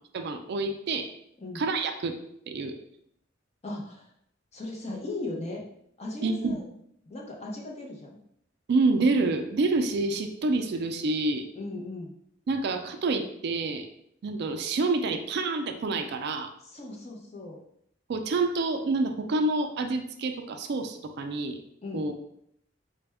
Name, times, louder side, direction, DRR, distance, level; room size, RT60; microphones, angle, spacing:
voice 1, 0.1-1.1 1.5-2.1 2.5-2.8 6.2-6.6 8.7-11.5 12.5-13.9 14.2-16.5 18.1-21.6 21.9-22.1, right 3 dB, 60° right, 7 dB, 0.4 m, -27 dB
voice 2, 3.6-4.1 4.5-5.6 6.0-6.6 7.1-8.2 11.5-12.1 16.7-17.6 21.8-22.1, left 2 dB, 35° left, -2 dB, 0.8 m, -37 dB
4.1 x 2.2 x 3.4 m, 0.71 s
head